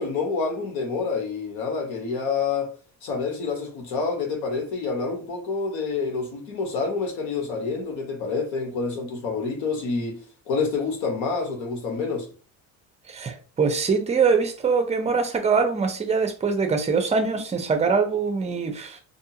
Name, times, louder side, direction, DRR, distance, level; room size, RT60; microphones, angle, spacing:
voice 1, 0.0-2.7 3.0-10.2 10.5-12.3, left 4 dB, 85° left, 1.2 m, -27 dB
voice 2, 13.1-19.0, right 5 dB, 20° right, 0.5 m, -23 dB
2.7 x 2.4 x 2.8 m
cardioid pair, 125°, 36 cm